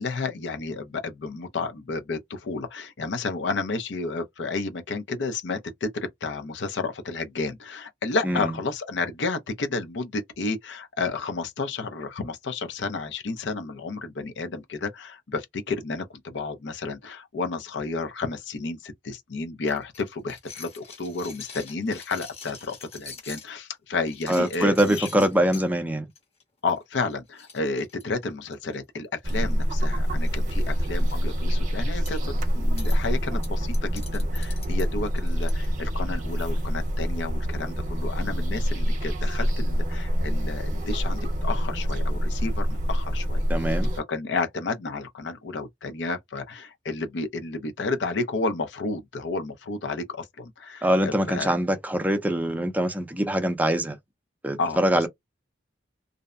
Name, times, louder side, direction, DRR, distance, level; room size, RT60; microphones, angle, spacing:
voice 1, 0.0-25.3 26.6-43.6 44.0-51.6 54.6-55.0, left 3 dB, 80° left, 0.6 m, -31 dB
sound 1, 19.7-23.5 24.0-25.7 26.1-26.4 26.7-26.8 27.1-27.2 27.4-28.7 29.5-29.9 30.2-30.3 30.7-31.1 32.1-32.3 32.8-33.0 33.4-35.7, left 5 dB, 35° left, 1.0 m, -44 dB
voice 2, 24.3-26.1 43.5-43.9 50.8-54.0 54.4-55.1, right 1 dB, 10° right, 0.5 m, -23 dB
sound 2, 29.2-44.0, equal, 45° right, 0.8 m, -26 dB
2.6 x 2.1 x 2.4 m
head